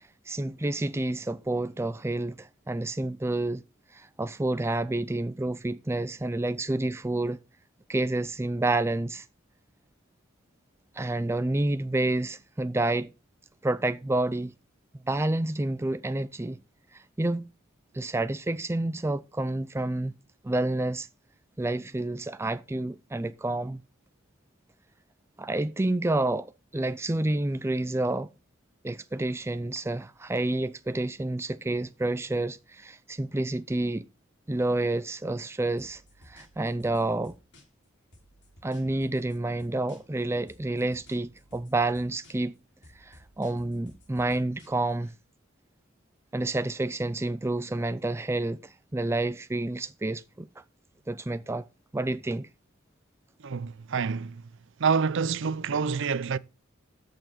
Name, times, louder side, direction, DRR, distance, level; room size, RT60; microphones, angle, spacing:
voice 1, 0.3-3.6 3.9-7.4 7.9-9.2 11.0-13.1 13.6-14.5 15.1-16.6 16.9-17.5 17.9-20.1 20.4-21.1 21.6-23.8 25.4-28.3 28.8-34.1 34.5-37.3 38.6-42.6 43.0-45.1 46.3-50.5 51.1-51.6 51.9-52.5, right 2 dB, 15° right, 0.4 m, -29 dB
sound 1, 35.8-37.9 38.1-40.2 40.5-42.6 42.8-45.1, left 1 dB, 60° left, 3.1 m, -56 dB
voice 2, 53.4-54.4 54.8-56.4, right 5 dB, 60° right, 0.6 m, -27 dB
13.5 x 6.8 x 4.0 m
head